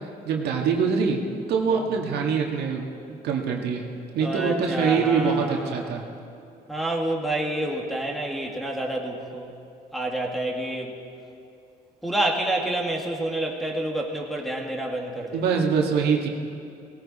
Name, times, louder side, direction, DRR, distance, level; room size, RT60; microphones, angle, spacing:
voice 1, 0.2-1.2 1.5-3.8 4.1-6.0 15.3-16.3, right 6 dB, 75° right, 1 dB, 2.0 m, -24 dB
voice 2, 4.2-6.1 6.7-9.5 9.9-10.9 12.0-15.4, right 1 dB, ahead, -2 dB, 2.1 m, -28 dB
18.0 x 17.5 x 4.3 m, 2.6 s
cardioid pair, 110°, 17 cm